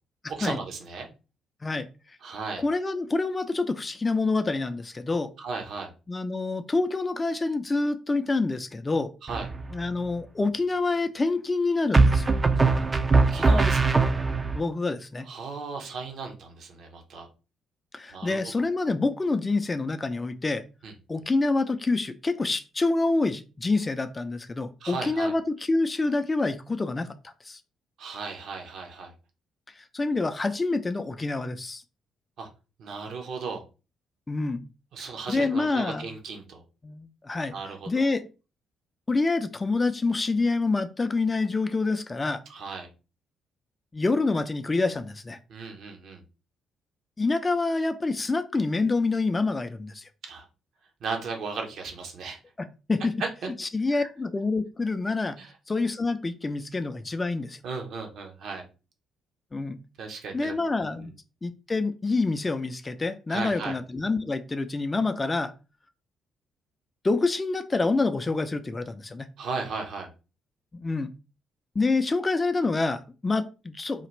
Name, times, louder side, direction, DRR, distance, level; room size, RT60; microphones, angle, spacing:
voice 1, 0.3-1.1 2.2-2.6 5.4-5.9 9.2-9.5 13.1-13.9 15.2-17.3 18.1-18.5 20.8-20.9 24.8-25.3 28.0-29.1 32.4-32.5 32.8-33.6 34.9-36.6 37.5-38.2 42.5-42.9 45.5-46.2 50.2-50.5 51.0-52.4 53.2-53.5 53.9-54.1 55.4-55.5 57.6-58.6 60.0-60.5 61.0-61.1 63.3-63.8 69.4-70.1, right 4 dB, 60° right, 3 dB, 0.9 m, -35 dB
voice 2, 2.6-5.3 6.1-9.1 9.7-12.4 14.5-15.3 17.9-20.6 21.1-25.4 25.7-27.6 29.8-31.8 34.3-34.6 35.3-36.1 36.8-37.5 37.9-38.2 39.1-42.4 43.9-45.4 47.2-50.1 52.9-53.1 53.6-55.4 55.7-57.6 59.5-59.8 60.3-61.1 61.4-65.5 67.0-69.3 70.7-71.1 71.8-74.1, left 3 dB, 25° left, 8 dB, 0.5 m, -27 dB
sound 1, 9.3-9.8 11.9-14.6, right 3 dB, 30° right, 0.5 m, -21 dB
3.9 x 2.4 x 3.2 m, 0.31 s
hypercardioid pair, 45°, 0 cm